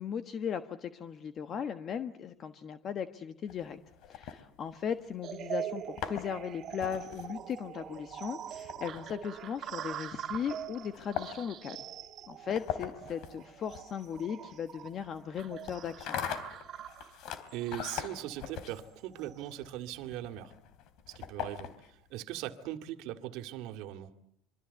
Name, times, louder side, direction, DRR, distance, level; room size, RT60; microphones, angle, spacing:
voice 1, 0.0-3.8 4.1-11.8 12.3-16.2, left 8 dB, 40° left, 9 dB, 1.3 m, -37 dB
sound 1, 3.5-5.1 5.7-22.1, left 10 dB, 60° left, 3.3 m, -43 dB
sound 2, 5.2-19.5, right 10 dB, 40° right, 2.3 m, -44 dB
voice 2, 17.5-20.5 21.1-24.1, right 13 dB, 70° right, 8 dB, 2.2 m, -40 dB
26.5 x 24.5 x 8.2 m, 0.71 s
cardioid pair, 135°, 0 cm